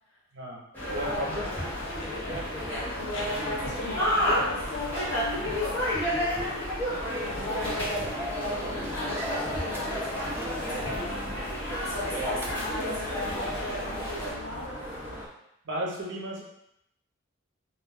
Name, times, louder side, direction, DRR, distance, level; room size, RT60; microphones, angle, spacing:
voice 1, 0.3-1.5 12.2-12.4 15.6-16.4, right 1 dB, 60° right, -3 dB, 0.7 m, -34 dB
sound 1, 0.7-14.3, equal, 10° left, 0.7 m, -32 dB
sound 2, 0.8-15.2, left 2 dB, 65° left, 0.5 m, -41 dB
voice 2, 1.0-1.5 3.0-6.0 7.1-11.3 11.8-14.9, left 1 dB, 85° left, -6 dB, 1.1 m, -36 dB
sound 3, 6.9-15.3, equal, 10° right, 0.3 m, -39 dB
2.3 x 2.2 x 3.4 m, 0.80 s
head